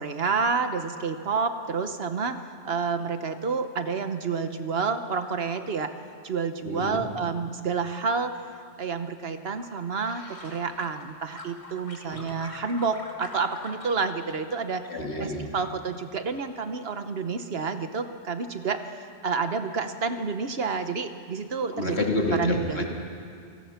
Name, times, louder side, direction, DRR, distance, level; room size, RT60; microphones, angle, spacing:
voice 1, 0.0-2.4 2.6-5.9 6.2-8.3 8.8-14.8 15.2-22.0 22.3-22.8, right 5 dB, 65° right, 9 dB, 1.2 m, -29 dB
voice 2, 6.6-7.0 12.0-12.2 14.9-15.4 21.7-22.8, left 1 dB, 70° left, 0 dB, 2.9 m, -28 dB
sound 1, 9.6-11.0 11.3-14.0 14.3-15.1 15.4-15.8, left 1 dB, 30° left, 2.1 m, -45 dB
29.0 x 18.0 x 5.8 m, 2.3 s
omnidirectional pair, 1.1 m